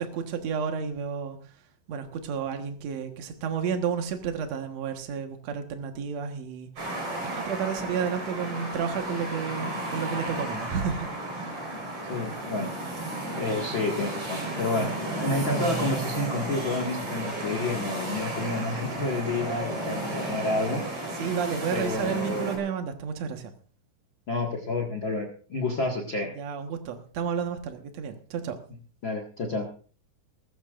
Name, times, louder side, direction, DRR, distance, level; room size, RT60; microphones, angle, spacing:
voice 1, 0.0-1.5 1.9-11.6 21.2-23.5 26.3-28.6, right 7 dB, 80° right, 5 dB, 1.5 m, -32 dB
sound 1, 6.8-22.6, right 1 dB, 30° right, 5.1 m, -33 dB
voice 2, 12.1-12.7 13.4-20.8 21.1-21.2 21.7-22.7 24.3-26.3 29.0-29.7, left 2 dB, 70° left, 3 dB, 1.1 m, -29 dB
20.5 x 15.0 x 2.5 m, 0.41 s
omnidirectional pair, 5.4 m